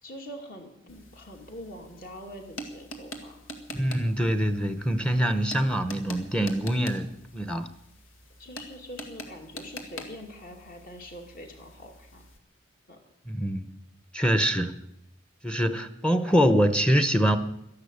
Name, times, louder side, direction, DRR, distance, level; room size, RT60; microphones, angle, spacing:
voice 1, 0.0-3.4 8.4-12.2 12.9-13.0, equal, 45° left, 3 dB, 2.8 m, -44 dB
sound 1, 0.9-12.4, left 1 dB, 85° left, 2.1 m, -45 dB
voice 2, 3.7-7.7 13.3-13.7 14.1-14.7 15.4-17.4, equal, 5° left, 10 dB, 0.9 m, -24 dB
13.0 x 11.5 x 8.3 m, 0.82 s
head